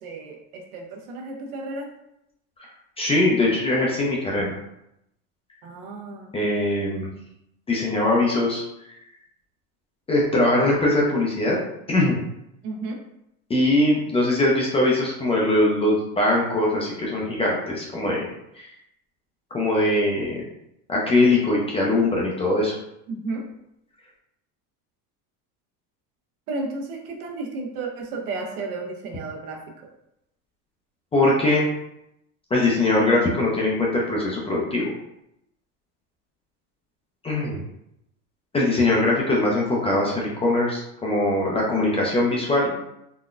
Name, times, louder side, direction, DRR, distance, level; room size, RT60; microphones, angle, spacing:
voice 1, 0.0-1.9 5.6-6.3 12.6-13.0 23.1-23.4 26.5-29.6, right 3 dB, 90° right, 0 dB, 0.8 m, -33 dB
voice 2, 3.0-4.5 6.3-7.1 7.7-8.9 10.1-11.6 11.9-12.2 13.5-18.2 18.5-18.7 19.5-20.4 20.9-22.7 31.1-31.7 32.5-34.9 37.2-37.6 38.5-42.7, left 2 dB, 15° left, -3 dB, 0.3 m, -21 dB
3.8 x 2.1 x 2.4 m, 0.81 s
supercardioid pair, 130°, 43 cm